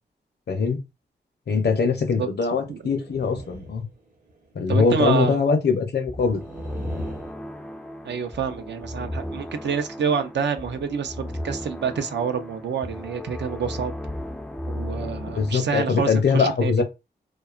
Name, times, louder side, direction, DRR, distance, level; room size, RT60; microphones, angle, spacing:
voice 1, 0.5-0.8 1.5-3.8 4.6-6.4 15.3-16.8, left 5 dB, 65° left, 0.6 m, -22 dB
voice 2, 2.2-2.8 4.7-5.4 8.0-13.9 14.7-16.8, right 6 dB, 75° right, 0.5 m, -27 dB
sound 1, 2.7-4.5 6.3-7.3, right 2 dB, 50° right, 0.7 m, -40 dB
sound 2, 6.1-15.6, left 1 dB, 5° left, 0.3 m, -35 dB
2.7 x 2.2 x 2.4 m
cardioid pair, 60°, 18 cm